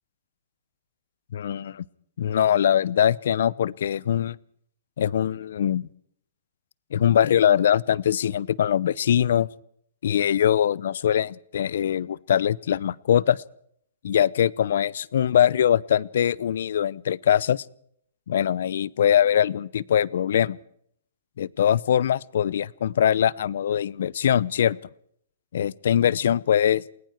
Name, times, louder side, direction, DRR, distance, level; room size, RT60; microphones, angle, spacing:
voice 1, 1.3-1.8 2.2-4.4 5.0-5.9 6.9-9.5 10.0-13.4 14.0-17.6 18.3-20.6 21.4-24.8 25.5-26.8, left 9 dB, 70° left, 23 dB, 0.8 m, -22 dB
29.0 x 20.5 x 4.6 m, 0.67 s
hypercardioid pair, 135°, 0 cm